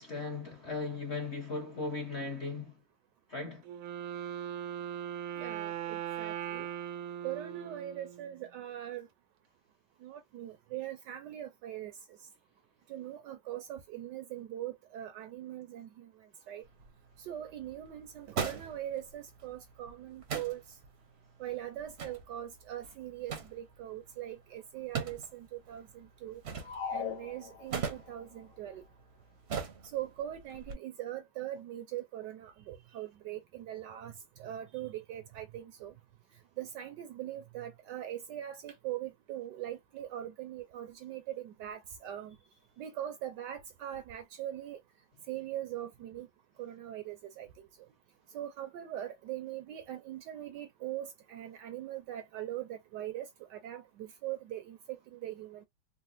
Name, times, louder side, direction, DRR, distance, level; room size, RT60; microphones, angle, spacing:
voice 1, 0.0-2.8 3.3-3.6, left 3 dB, 45° left, 1.0 m, -37 dB
Wind instrument woodwind instrument, 3.6-8.5, right 10 dB, 90° right, 1.5 m, -39 dB
voice 2, 5.4-6.7 7.2-9.1 10.0-11.9 12.9-16.1 16.5-16.6 17.2-20.6 21.4-26.4 26.9-28.8 29.9-34.1 34.4-35.9 36.6-42.4 42.8-44.8 45.3-46.3 46.6-47.5 48.3-55.7, right 12 dB, 75° right, 1.1 m, -41 dB
sound 1, 16.6-30.7, right 6 dB, 55° right, 0.7 m, -43 dB
sound 2, 26.6-28.1, left 7 dB, 70° left, 1.2 m, -39 dB
3.9 x 2.0 x 2.6 m
omnidirectional pair, 2.1 m